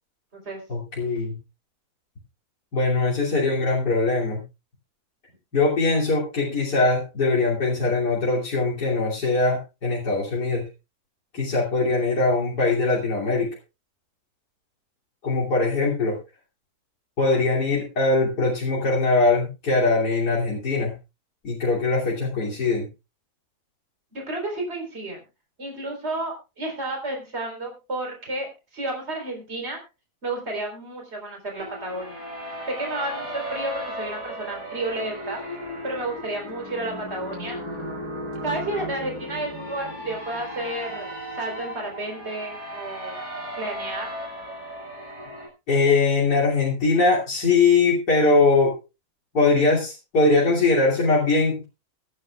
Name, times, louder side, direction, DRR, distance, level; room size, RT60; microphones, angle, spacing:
voice 1, 0.7-1.4 2.7-4.4 5.5-10.6 11.3-13.5 15.2-16.2 17.2-20.9 21.4-22.9 45.7-48.7 49.3-51.6, left 3 dB, 85° left, -5 dB, 3.5 m, -21 dB
voice 2, 24.1-25.2 25.6-28.5 28.7-29.8 30.2-32.2 32.7-35.4 35.8-37.6 38.4-41.1 41.3-43.2 43.6-44.1, right 2 dB, 40° right, 1 dB, 4.4 m, -31 dB
sound 1, 31.6-45.5, equal, 80° right, 5.9 m, -35 dB
23.5 x 9.5 x 2.4 m, 0.28 s
omnidirectional pair, 1.7 m